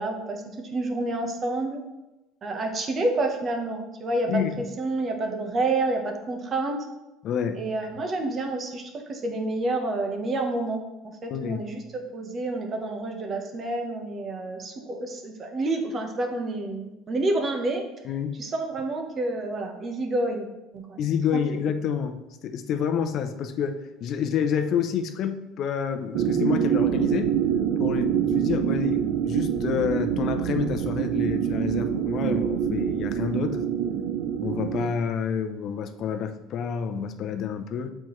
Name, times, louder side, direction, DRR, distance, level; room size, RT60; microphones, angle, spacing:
voice 1, 0.0-1.8 2.4-6.9 7.5-17.8 18.4-20.5 20.7-21.0, right 2 dB, 35° right, 3 dB, 1.0 m, -29 dB
voice 2, 4.3-4.6 7.2-7.7 11.3-11.6 18.0-18.4 21.0-27.3 27.8-33.6 34.4-37.9, left 7 dB, 55° left, 8 dB, 0.6 m, -28 dB
sound 1, 26.1-34.9, right 9 dB, 75° right, 0.5 m, -25 dB
7.7 x 4.4 x 3.1 m, 1.0 s
supercardioid pair, 110°, 0 cm